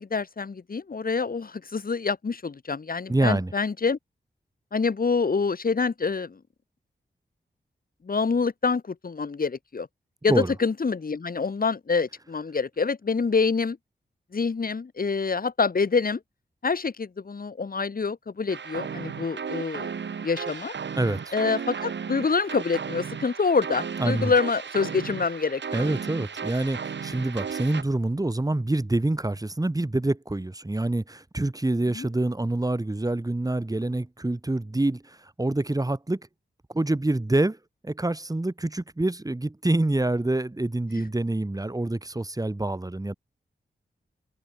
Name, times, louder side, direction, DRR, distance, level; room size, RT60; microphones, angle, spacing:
voice 1, 0.0-4.0 4.7-6.4 8.0-9.9 10.2-13.8 14.3-16.2 16.6-19.9 20.2-20.7 21.3-25.8 31.9-32.1, left 4 dB, 55° left, 3.3 m, -26 dB
voice 2, 3.1-3.5 10.3-10.5 21.0-21.3 24.0-24.3 25.7-36.2 36.7-37.6 37.8-43.1, right 2 dB, 20° right, 5.1 m, -26 dB
sound 1, 18.5-27.8, right 6 dB, 90° right, 5.8 m, -35 dB
open air
wide cardioid pair, 90°, 18 cm